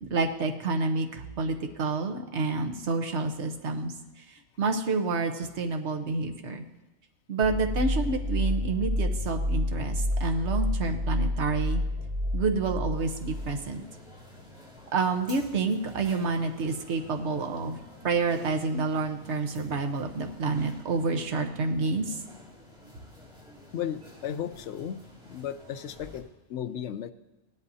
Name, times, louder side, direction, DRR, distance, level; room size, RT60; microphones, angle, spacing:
voice 1, 0.0-6.6 7.3-11.8 12.3-13.8 14.9-22.2, right 3 dB, 75° right, 4 dB, 1.3 m, -29 dB
sound 1, 7.4-14.6, left 1 dB, 40° right, 3.6 m, -29 dB
sound 2, 12.9-26.2, left 1 dB, 5° right, 2.3 m, -51 dB
voice 2, 23.7-25.0 25.3-27.1, left 9 dB, 80° left, 11 dB, 0.9 m, -35 dB
17.0 x 11.0 x 2.7 m, 1.0 s
omnidirectional pair, 1.2 m